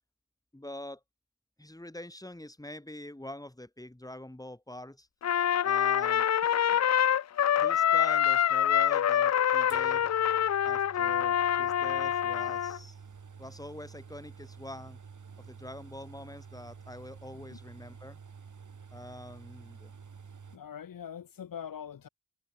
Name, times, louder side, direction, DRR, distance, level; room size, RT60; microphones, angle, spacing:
voice 1, 0.5-1.0 1.6-5.1 5.6-6.8 7.4-10.1 10.6-13.0 13.4-15.0 15.4-18.2 18.9-19.9, left 1 dB, 10° left, 4.8 m, -45 dB
Trumpet, 5.2-12.8, left 10 dB, 50° left, 0.5 m, -26 dB
sound 1, 9.7-20.6, right 6 dB, 60° right, 4.6 m, -50 dB
voice 2, 20.5-22.1, left 8 dB, 80° left, 1.6 m, -42 dB
cardioid pair, 65°, 33 cm